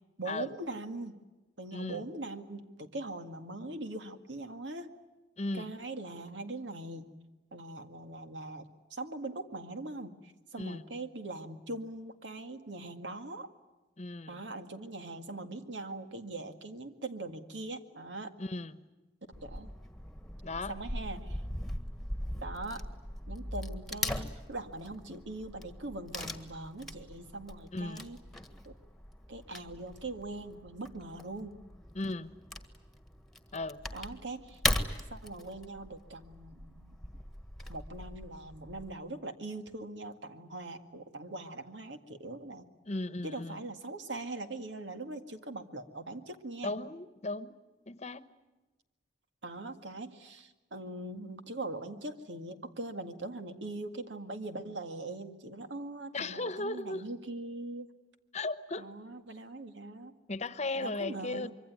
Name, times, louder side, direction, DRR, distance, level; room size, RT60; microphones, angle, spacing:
voice 1, 0.2-1.2 1.6-4.9 5.5-7.1 7.5-13.5 14.3-18.3 19.3-19.7 20.7-21.4 22.4-22.9 23.3-28.2 28.7-28.8 29.3-31.6 33.9-34.6 35.1-37.0 37.7-42.7 43.2-46.8 49.4-57.9 58.8-60.1 60.8-61.5, right 2 dB, 85° right, 7 dB, 2.0 m, -41 dB
voice 2, 1.7-2.1 5.4-5.7 10.6-10.8 14.0-14.4 18.4-18.8 20.4-20.8 27.7-28.1 31.9-32.3 33.5-33.8 42.8-43.6 46.6-47.5 47.9-48.2 56.1-57.0 58.3-58.9 60.3-61.5, left 2 dB, 40° left, 13 dB, 1.1 m, -36 dB
Wood / Tearing, 19.3-38.9, left 1 dB, ahead, 1.6 m, -40 dB
25.5 x 24.0 x 9.5 m, 1.1 s
head